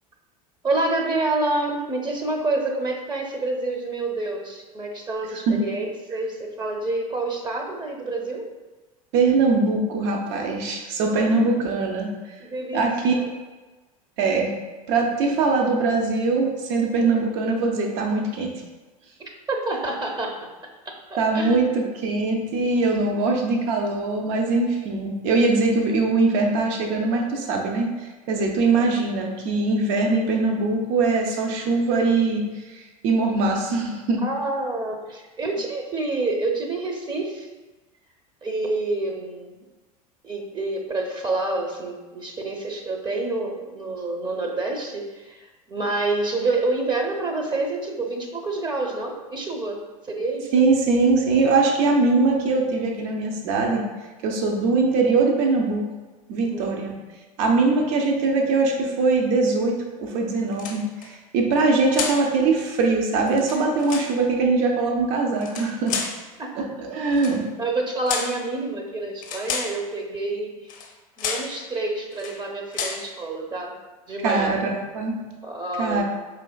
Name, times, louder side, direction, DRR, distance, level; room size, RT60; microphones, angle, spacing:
voice 1, 0.6-8.5 11.1-11.4 12.4-12.9 13.1-13.2 19.2-20.5 20.9-21.0 21.3-21.6 34.2-37.5 38.4-39.6 40.2-50.5 56.4-56.8 66.4-66.7 67.1-67.2 67.6-70.7 71.2-73.7 74.1-74.5 75.4-76.0, right 2 dB, 25° right, 2 dB, 0.7 m, -28 dB
voice 2, 9.1-12.1 12.7-13.1 14.2-14.5 14.9-18.5 21.2-34.2 50.5-53.8 54.2-55.9 56.3-56.9 57.4-66.0 66.6-67.5 74.2-75.2 75.8-76.0, right 3 dB, 60° right, 1 dB, 0.7 m, -22 dB
sound 1, 60.5-61.1 61.9-62.3 63.3-64.1 65.4-66.2 67.1-67.4 68.1-68.4 69.2-69.8 70.7-70.9 71.2-71.5 72.1-72.4 72.7-73.1, left 5 dB, 45° left, 0.6 m, -30 dB
4.6 x 3.0 x 2.2 m, 1.2 s
hypercardioid pair, 80°, 18 cm